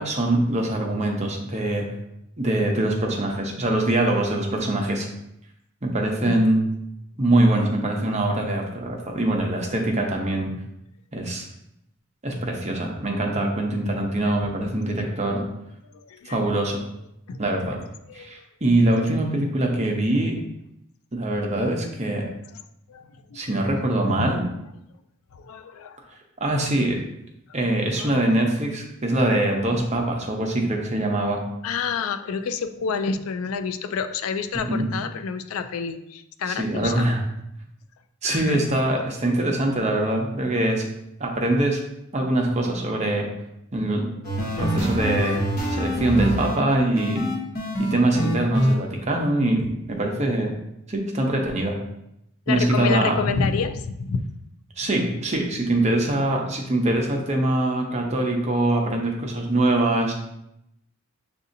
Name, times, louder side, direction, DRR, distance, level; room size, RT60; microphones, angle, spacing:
voice 1, 0.0-1.9 2.4-5.1 5.8-6.6 7.2-10.5 11.1-11.4 12.2-15.4 16.3-16.8 17.4-17.8 18.1-20.3 21.1-22.3 23.3-24.4 26.4-27.0 27.5-31.4 34.5-34.9 36.5-37.2 38.2-40.9 41.2-41.8 42.1-43.3 43.7-44.1 44.4-45.4 45.7-47.2 47.8-50.5 50.9-51.8 52.5-53.2 54.8-60.1, right 1 dB, 30° right, 1 dB, 0.7 m, -23 dB
voice 2, 15.9-16.5 17.3-17.6 18.2-18.3 19.1-19.2 22.9-23.6 24.0-24.3 25.3-26.0 27.6-28.2 31.6-37.1 38.2-38.6 44.5-44.6 48.2-48.4 52.5-54.3, left 5 dB, 70° left, 9 dB, 0.4 m, -29 dB
sound 1, 44.2-46.6 46.9-48.7, equal, 40° left, 1.0 m, -25 dB
7.1 x 2.7 x 2.6 m, 0.81 s
head